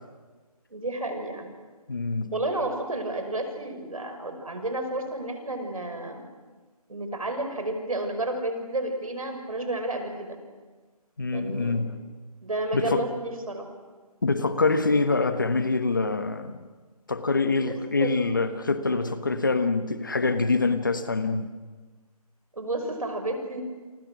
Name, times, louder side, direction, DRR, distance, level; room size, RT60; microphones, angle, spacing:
voice 1, 0.7-1.5 2.3-6.3 6.9-10.4 11.3-11.8 12.4-13.7 18.0-18.2 22.6-23.6, right 2 dB, 60° right, 5.9 m, -31 dB
voice 2, 1.9-2.3 11.2-12.0 12.7-13.1 14.2-16.7 17.1-21.5, left 3 dB, 30° left, 1.3 m, -25 dB
29.5 x 24.5 x 6.3 m
figure-of-eight pair, 175°, 20 cm